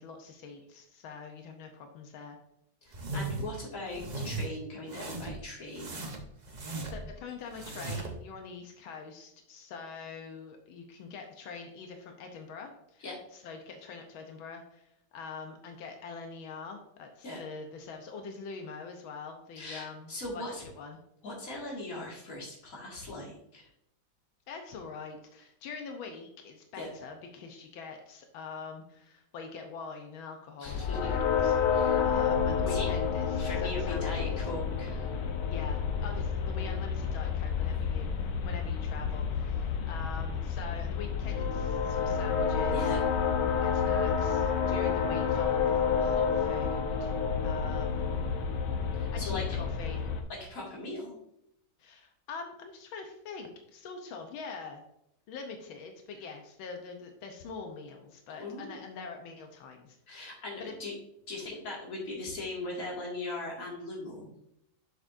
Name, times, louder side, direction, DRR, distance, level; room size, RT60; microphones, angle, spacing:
voice 1, 0.0-2.4 6.6-21.0 24.5-34.5 35.5-38.1 38.4-42.9 43.6-47.1 47.4-48.0 49.1-50.0 51.8-54.8 55.3-60.0 60.6-60.8, left 5 dB, 85° left, 4 dB, 1.7 m, -44 dB
voice 2, 2.8-6.0 13.0-13.2 17.2-17.4 19.6-20.6 21.2-23.7 26.8-26.9 30.6-31.1 31.7-32.0 32.7-32.9 33.4-35.1 42.7-43.0 49.0-49.4 50.3-51.1 58.4-58.8 60.1-60.9 61.3-64.3, left 2 dB, 45° left, -3 dB, 2.4 m, -39 dB
sound 1, 2.9-3.5 3.9-4.5 4.9-5.4 5.8-7.1 7.5-8.2, right 3 dB, 40° right, 0.6 m, -37 dB
sound 2, 30.7-50.2, left 6 dB, 65° left, 1.4 m, -29 dB
7.3 x 6.7 x 2.6 m, 0.77 s
omnidirectional pair, 2.2 m